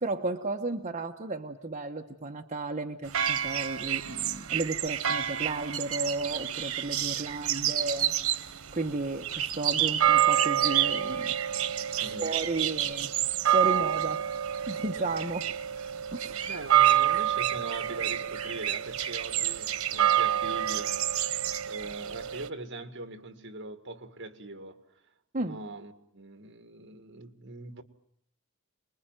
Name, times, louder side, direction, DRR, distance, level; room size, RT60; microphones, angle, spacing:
voice 1, 0.0-11.3 12.0-13.1 13.4-14.2 14.7-15.5 16.1-16.5 25.3-25.6, right 2 dB, 35° right, 1.2 m, -33 dB
sound 1, 3.0-22.5, right 11 dB, 90° right, 1.2 m, -28 dB
voice 2, 12.0-12.3 16.5-21.4 21.7-24.8 25.4-27.8, right 2 dB, 55° right, 2.0 m, -42 dB
27.5 x 21.5 x 9.1 m
head